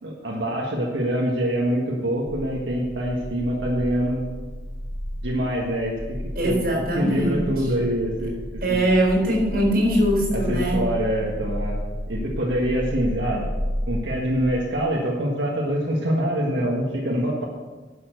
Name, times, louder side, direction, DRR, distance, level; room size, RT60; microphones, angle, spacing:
voice 1, 0.0-4.2 5.2-6.2 6.4-6.7 6.9-8.8 10.3-11.8 12.1-13.5 13.9-17.4, equal, 80° right, -3 dB, 1.6 m, -25 dB
sound 1, 3.2-14.5, equal, 30° left, 0.8 m, -32 dB
voice 2, 6.4-7.5 8.6-10.8, right 1 dB, 55° right, 0 dB, 4.3 m, -21 dB
11.0 x 7.0 x 6.6 m, 1.3 s
head